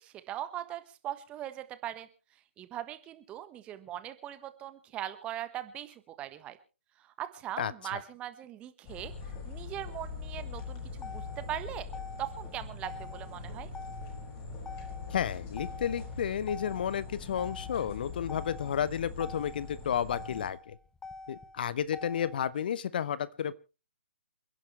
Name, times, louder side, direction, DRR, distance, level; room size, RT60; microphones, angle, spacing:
voice 1, 0.0-2.1 2.6-6.6 7.0-11.9 12.2-13.7, right 12 dB, 15° right, 12 dB, 1.4 m, -40 dB
voice 2, 7.6-8.0 15.1-20.8 21.3-23.5, left 9 dB, 45° left, 18 dB, 0.8 m, -32 dB
sound 1, 8.8-20.5, left 4 dB, 25° left, 5.5 m, -42 dB
Motor vehicle (road), 10.6-22.6, left 3 dB, 10° left, 1.0 m, -47 dB
28.5 x 10.5 x 3.3 m, 0.33 s
figure-of-eight pair, 135°, 7 cm